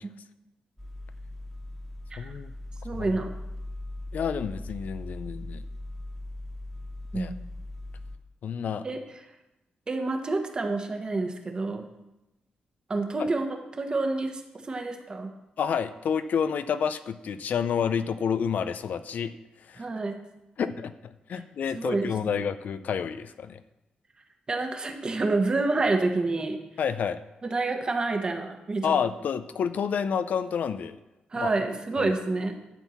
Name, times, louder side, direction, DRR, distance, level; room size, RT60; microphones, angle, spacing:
sound 1, 0.8-8.2, left 1 dB, 5° left, 1.4 m, -39 dB
voice 1, 2.2-2.5 2.9-3.1 4.1-5.6 7.1-7.3 8.4-8.8 13.2-13.3 15.6-19.3 19.7-19.8 20.6-23.6 26.8-27.2 28.8-31.0 31.3-31.5 32.0-32.1, left 7 dB, 65° left, 12 dB, 0.5 m, -29 dB
voice 2, 2.8-3.3 7.1-7.3 8.8-9.0 9.9-11.9 12.9-13.4 13.7-15.3 19.8-20.1 21.3-21.4 21.7-22.4 24.5-26.6 27.4-28.8 31.3-32.5, right 3 dB, 30° right, 4 dB, 1.2 m, -28 dB
12.0 x 4.5 x 7.1 m, 0.96 s
wide cardioid pair, 130°, 3 cm